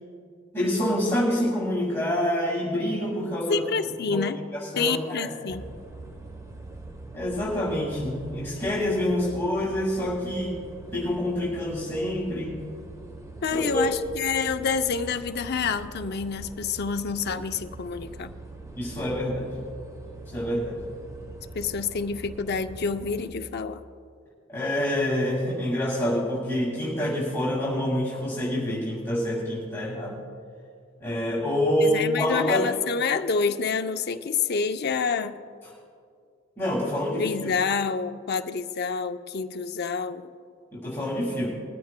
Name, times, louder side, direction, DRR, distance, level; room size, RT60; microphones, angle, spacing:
voice 1, 0.5-3.6 4.1-5.3 7.1-10.6 10.9-12.6 13.5-13.8 18.8-19.5 20.3-20.8 24.5-30.2 31.0-32.6 36.6-37.2 40.7-41.5, left 1 dB, 10° left, -7 dB, 2.1 m, -27 dB
voice 2, 3.5-4.4 4.8-5.6 13.4-18.3 21.5-23.8 31.8-35.4 37.2-40.3, left 5 dB, 55° left, 8 dB, 0.6 m, -28 dB
sound 1, 5.5-23.3, right 2 dB, 15° right, 0.9 m, -43 dB
21.0 x 14.0 x 2.2 m, 2.3 s
head